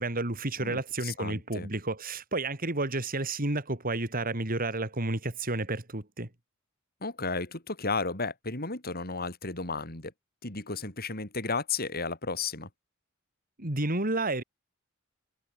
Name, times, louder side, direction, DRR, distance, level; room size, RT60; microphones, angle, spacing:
voice 1, 0.0-6.3 13.6-14.4, right 2 dB, 45° right, 3.6 m, -31 dB
voice 2, 0.6-1.7 7.0-10.1 10.4-12.7, left 4 dB, 50° left, 7.2 m, -33 dB
head